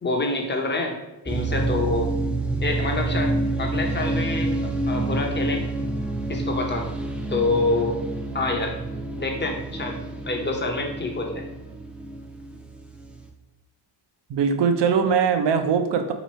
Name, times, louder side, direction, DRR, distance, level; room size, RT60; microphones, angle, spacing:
voice 1, 0.0-1.0 1.2-2.1 2.6-5.6 6.3-6.9 7.3-7.9 8.3-8.7 9.2-10.0 10.2-11.4, left 2 dB, 25° left, 2 dB, 0.7 m, -26 dB
sound 1, 1.3-13.3, right 2 dB, 5° right, 0.3 m, -28 dB
voice 2, 14.3-16.1, right 6 dB, 65° right, 7 dB, 0.6 m, -21 dB
3.0 x 2.6 x 4.2 m, 0.99 s
cardioid pair, 85°, 46 cm